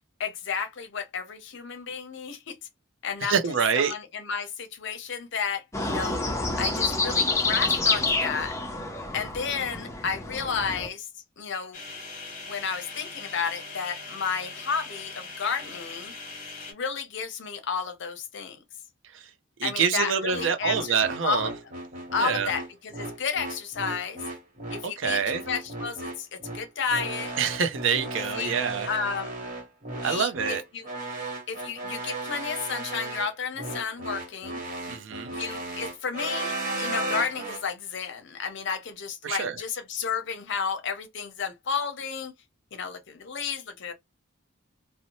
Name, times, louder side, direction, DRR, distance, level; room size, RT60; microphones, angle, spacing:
voice 1, 0.2-2.5 3.0-3.4 3.8-6.2 6.6-8.5 9.1-11.1 11.4-11.8 12.4-16.1 16.7-18.6 19.6-21.0 21.2-21.5 22.1-24.2 24.7-27.3 28.3-29.3 30.0-30.9 31.5-34.6 35.3-42.3 42.7-43.9, left 6 dB, 60° left, 0.6 m, -32 dB
voice 2, 3.2-3.9 19.1-19.3 19.6-21.5 22.2-22.5 24.8-25.4 27.4-28.9 30.0-30.6 34.9-35.3 39.2-39.6, right 6 dB, 65° right, 0.5 m, -26 dB
sound 1, 5.7-10.9, left 3 dB, 15° left, 0.5 m, -28 dB
sound 2, 11.7-16.7, left 3 dB, 40° left, 0.9 m, -41 dB
sound 3, 20.3-37.6, right 2 dB, 40° right, 1.2 m, -35 dB
2.7 x 2.0 x 2.9 m
head